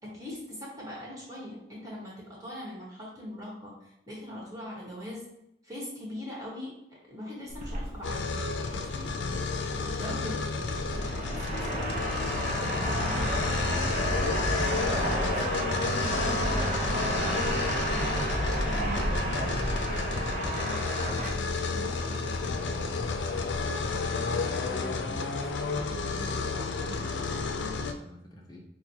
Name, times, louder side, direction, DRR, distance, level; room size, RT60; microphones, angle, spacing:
voice 1, 0.0-5.3 5.6-6.7 7.0-8.3 8.6-9.1 10.0-10.4 11.5-11.6, left 1 dB, 20° right, -5 dB, 1.4 m, -41 dB
sound 1, 7.5-24.0, right 1 dB, 45° right, 0.6 m, -32 dB
sound 2, 8.0-27.9, left 4 dB, 90° left, 0.5 m, -31 dB
voice 2, 9.7-10.7 11.2-12.9 18.7-20.6 21.0-28.6, right 1 dB, 20° left, -1 dB, 0.7 m, -47 dB
6.0 x 2.2 x 2.8 m, 0.83 s
head